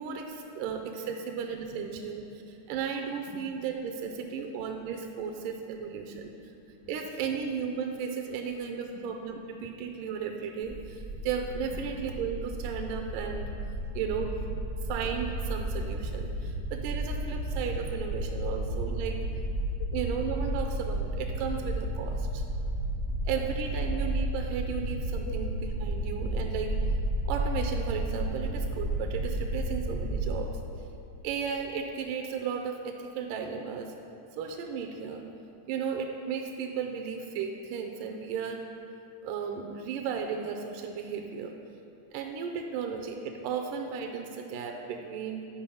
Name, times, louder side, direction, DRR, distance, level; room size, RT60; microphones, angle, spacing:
voice 1, 0.0-6.3 6.9-13.5 13.9-14.3 14.9-19.2 19.9-22.4 23.3-26.8 27.3-30.5 31.2-33.9 34.3-35.2 35.7-38.7 39.2-41.5 42.1-45.4, right 6 dB, 80° right, 3 dB, 2.0 m, -35 dB
voice 2, 5.8-6.9 7.3-7.4 8.3-8.5 8.9-9.0 11.2-11.3 11.7-11.9 13.8-14.0 14.7-14.9 16.1-17.4 17.8-17.9 18.4-18.5 19.8-19.9 20.5-20.6 22.1-22.2 22.7-23.2 25.2-25.5, left 5 dB, 80° left, 2 dB, 2.4 m, -51 dB
sound 1, 10.7-30.3, right 1 dB, 55° right, 0.6 m, -32 dB
10.5 x 4.9 x 5.4 m, 2.6 s
omnidirectional pair, 4.2 m